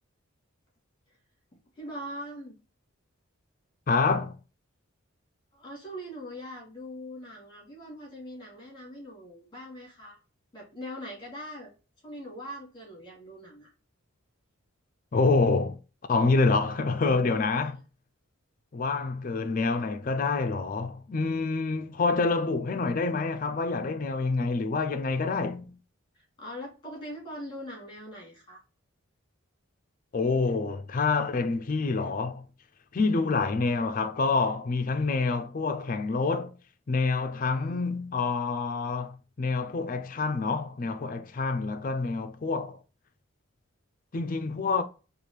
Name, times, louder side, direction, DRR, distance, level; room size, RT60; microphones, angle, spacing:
voice 1, 1.8-2.6 5.5-10.2 10.5-11.7 12.0-13.7 17.6-17.7 25.1-25.2 26.4-28.6 37.3-37.8, equal, 20° left, 1.8 m, -42 dB
voice 2, 3.9-4.4 15.1-15.8 16.1-17.8 18.7-25.8 30.1-32.4 32.9-36.6 36.9-42.8 44.1-44.8, left 3 dB, 40° left, 0.4 m, -27 dB
4.6 x 2.4 x 3.2 m
head